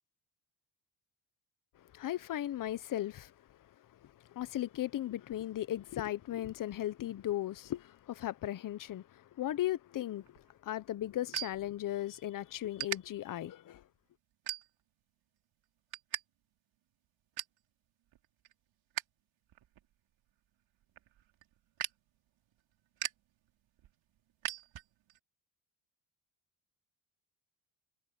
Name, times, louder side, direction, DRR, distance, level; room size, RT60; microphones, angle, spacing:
voice 1, 1.8-3.7 4.0-13.8, left 13 dB, 45° left, 0.7 m, -37 dB
sound 1, 10.2-12.3 12.7-13.0 13.6-13.8 14.4-15.0 15.4-16.2 16.5-16.6 17.0-17.6 18.1-19.2 19.5-25.2, right 12 dB, 85° right, 4.3 m, -42 dB
cardioid pair, 140°, 45 cm